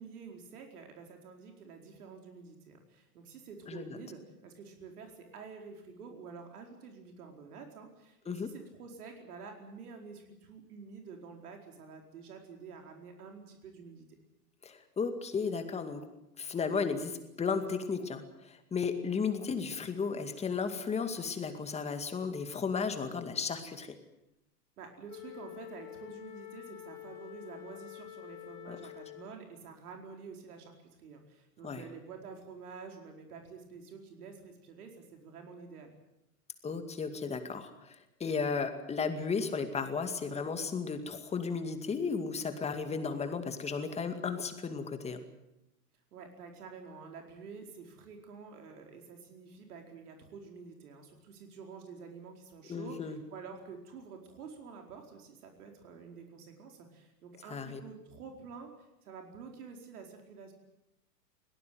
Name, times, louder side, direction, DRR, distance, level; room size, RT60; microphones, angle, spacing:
voice 1, 0.0-14.1 24.8-35.9 46.1-60.5, right 5 dB, 65° right, 3 dB, 4.7 m, -49 dB
voice 2, 3.7-4.0 8.3-8.5 14.6-16.1 16.4-24.0 28.7-28.8 31.6-31.8 36.6-45.2 52.7-53.2 57.5-57.8, left 5 dB, 15° left, 8 dB, 2.2 m, -34 dB
Wind instrument woodwind instrument, 25.1-29.4, left 15 dB, 35° left, 4.8 m, -48 dB
21.5 x 18.0 x 9.4 m, 0.88 s
hypercardioid pair, 130°, 48 cm